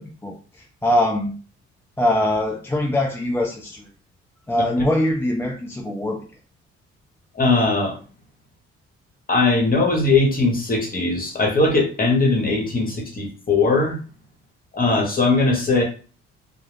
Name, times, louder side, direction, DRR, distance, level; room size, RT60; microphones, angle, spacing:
voice 1, 0.0-1.3 2.0-3.8 4.5-6.2, left 1 dB, 10° left, 1 dB, 0.4 m, -22 dB
voice 2, 7.4-7.9 9.3-13.9 14.7-15.8, left 3 dB, 30° left, 1 dB, 1.1 m, -19 dB
2.2 x 2.0 x 3.3 m, 0.37 s
supercardioid pair, 65°, 29 cm